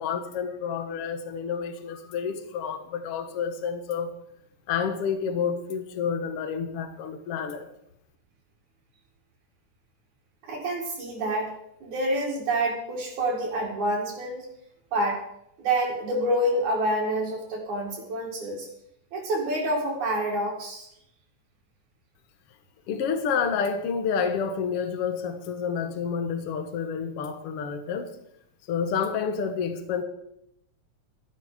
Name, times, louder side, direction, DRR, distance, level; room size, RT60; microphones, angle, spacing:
voice 1, 0.0-4.1 4.7-7.7 22.9-28.1 28.7-30.0, left 6 dB, 55° left, 1.9 m, -29 dB
voice 2, 10.4-11.5 11.8-14.5 14.9-15.2 15.6-18.7 19.1-20.9, right 1 dB, 70° right, 3.7 m, -27 dB
14.0 x 10.5 x 5.1 m
omnidirectional pair, 3.6 m